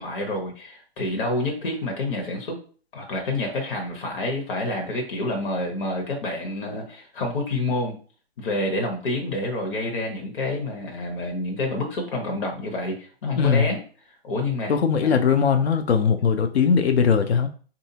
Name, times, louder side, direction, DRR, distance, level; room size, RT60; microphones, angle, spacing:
voice 1, 0.0-2.6 2.9-8.0 8.4-13.8 14.2-14.7 15.0-15.1, left 2 dB, 55° left, 2 dB, 1.1 m, -28 dB
voice 2, 13.4-13.7 14.7-17.5, left 6 dB, 80° left, 7 dB, 0.6 m, -20 dB
3.4 x 2.7 x 2.8 m, 0.41 s
hypercardioid pair, 140°, 32 cm